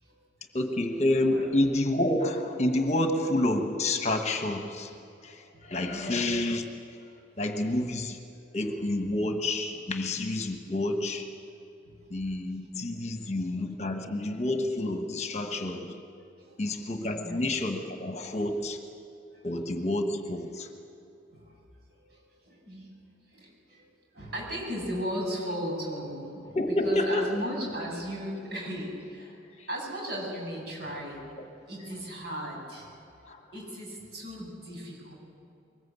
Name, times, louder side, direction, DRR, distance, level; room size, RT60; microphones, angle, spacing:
voice 1, 0.5-5.0 5.2-7.0 7.4-8.2 8.5-11.4 12.1-16.0 16.6-18.8 19.4-20.7 26.4-27.4 29.6-29.7 33.2-33.5, left 1 dB, 35° left, 5 dB, 1.3 m, -29 dB
voice 2, 5.9-6.2 7.2-7.4 11.9-12.1 16.4-16.7 17.1-17.4 19.3-19.5 21.3-21.6 21.9-22.9 23.3-23.9 24.1-29.4 29.7-31.3 31.7-32.9 33.5-35.1, equal, 55° right, -1 dB, 7.3 m, -36 dB
23.0 x 20.5 x 8.3 m, 2.7 s
head